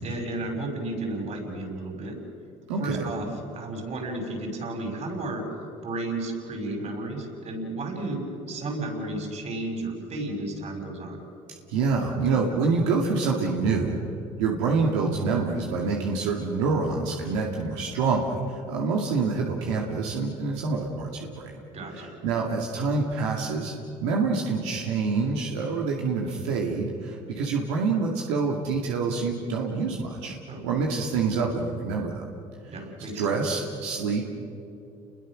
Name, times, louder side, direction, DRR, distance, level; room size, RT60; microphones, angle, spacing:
voice 1, 0.0-2.1 2.8-3.3 3.5-5.4 5.8-8.2 8.5-11.2 21.7-22.1 30.5-30.6 31.2-31.5 32.7-33.4, right 2 dB, 50° right, 3 dB, 6.1 m, -33 dB
voice 2, 2.7-3.1 11.7-14.0 14.4-21.5 21.9-23.7 24.0-30.4 30.6-32.2 33.1-34.2, right 4 dB, 90° right, -1 dB, 2.3 m, -26 dB
29.5 x 21.5 x 6.3 m, 2.7 s
supercardioid pair, 80°, 15 cm